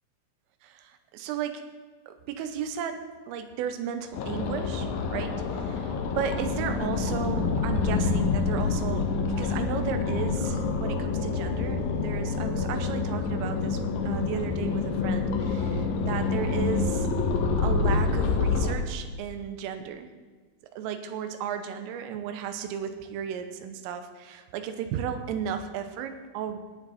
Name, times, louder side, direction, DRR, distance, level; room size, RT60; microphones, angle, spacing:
voice 1, 0.6-1.6 2.1-17.1 17.6-20.1 20.7-26.6, right 8 dB, 85° right, 8 dB, 3.5 m, -34 dB
sound 1, 4.1-18.7, left 4 dB, 80° left, 2.0 m, -27 dB
18.0 x 9.0 x 4.1 m, 1.4 s
omnidirectional pair, 5.8 m